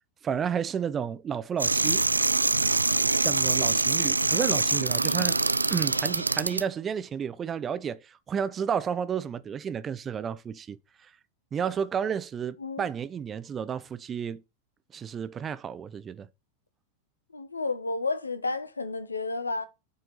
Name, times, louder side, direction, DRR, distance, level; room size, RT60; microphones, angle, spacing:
voice 1, 0.2-2.0 3.2-5.4 5.7-11.1 11.5-14.4 14.9-16.3, right 7 dB, 25° right, 0.6 m, -31 dB
sound 1, 1.6-6.6, right 3 dB, 80° right, 0.4 m, -24 dB
voice 2, 17.3-19.6, left 3 dB, 80° left, 1.2 m, -31 dB
8.8 x 5.6 x 5.1 m
figure-of-eight pair, 90°, 0 cm